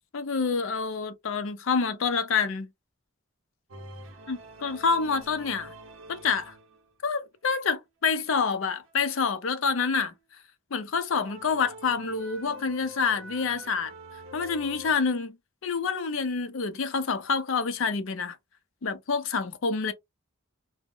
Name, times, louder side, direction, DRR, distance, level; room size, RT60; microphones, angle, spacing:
voice 1, 0.1-2.7 4.3-5.7 6.1-6.5 7.0-10.1 10.7-13.9 14.3-15.4 15.6-18.4 18.8-19.9, left 5 dB, 65° left, 0.5 m, -27 dB
sound 1, 3.7-7.1 7.7-7.8 8.8-8.9 11.2-14.9, right 1 dB, 60° right, 0.6 m, -46 dB
2.1 x 2.0 x 3.6 m
head